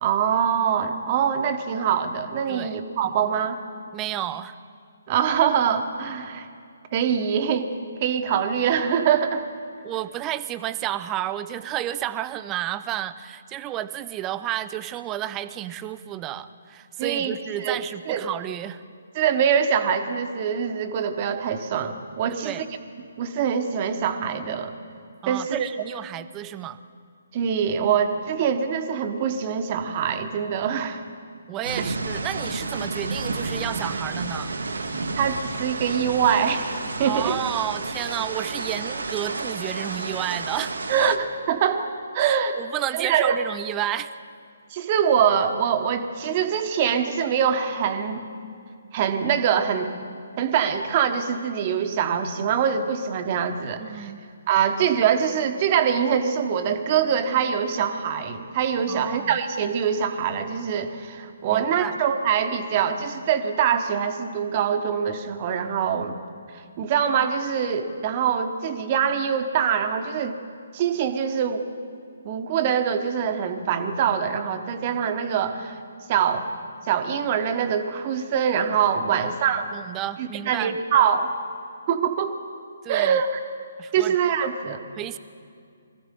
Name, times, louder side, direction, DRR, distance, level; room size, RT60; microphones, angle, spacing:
voice 1, 0.0-3.6 5.1-6.5 6.9-7.7 8.0-9.4 17.0-18.2 19.1-22.5 23.2-24.7 25.3-25.7 27.3-31.0 35.2-36.7 37.0-37.4 40.9-42.5 42.9-43.4 44.7-48.2 48.9-49.9 50.4-54.1 54.5-66.2 66.5-70.4 70.7-71.7 72.2-75.8 76.1-76.5 76.9-79.7 80.2-81.3 81.9-82.3 82.9-83.3 83.9-84.8, right 8 dB, 35° right, 7 dB, 1.3 m, -24 dB
voice 2, 3.9-4.6 9.8-18.8 22.3-22.6 25.2-26.8 31.5-34.5 37.1-41.1 42.2-44.2 53.8-54.2 58.9-59.4 61.5-62.0 79.1-79.3 79.7-80.8 82.8-83.2 83.8-84.1 85.0-85.2, right 12 dB, 20° right, 13 dB, 0.5 m, -31 dB
sound 1, 31.6-41.2, right 3 dB, 70° right, 1.3 m, -31 dB
24.0 x 15.0 x 3.8 m, 2.3 s
figure-of-eight pair, 135°, 0 cm